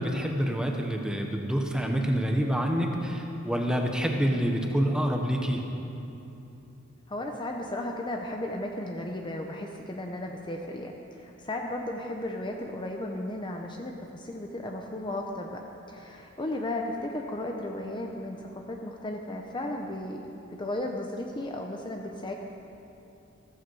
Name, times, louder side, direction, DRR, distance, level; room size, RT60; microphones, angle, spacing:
voice 1, 0.0-5.6, equal, 5° right, 2 dB, 1.1 m, -27 dB
voice 2, 7.1-15.6 15.9-18.4 18.7-20.3 20.5-22.3, left 1 dB, 25° left, 2 dB, 0.8 m, -35 dB
14.5 x 14.5 x 4.8 m, 2.8 s
head